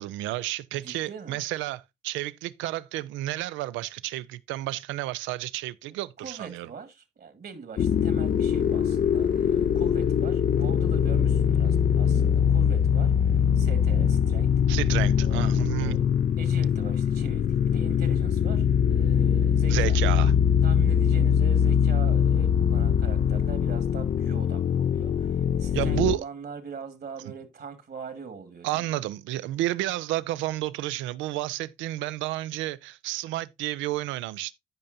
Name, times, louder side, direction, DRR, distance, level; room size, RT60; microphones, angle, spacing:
voice 1, 0.0-6.7 14.7-16.0 19.7-20.3 25.7-26.3 27.3-27.4 28.6-34.5, right 15 dB, 85° right, 0.4 m, -31 dB
voice 2, 0.8-1.4 5.9-14.5 15.2-16.1 16.4-18.6 18.9-20.0 20.6-25.3 25.6-29.0, right 5 dB, 55° right, 1.8 m, -42 dB
sound 1, 7.8-26.2, left 8 dB, 45° left, 0.4 m, -22 dB
14.5 x 5.4 x 2.6 m
supercardioid pair, 45°, 19 cm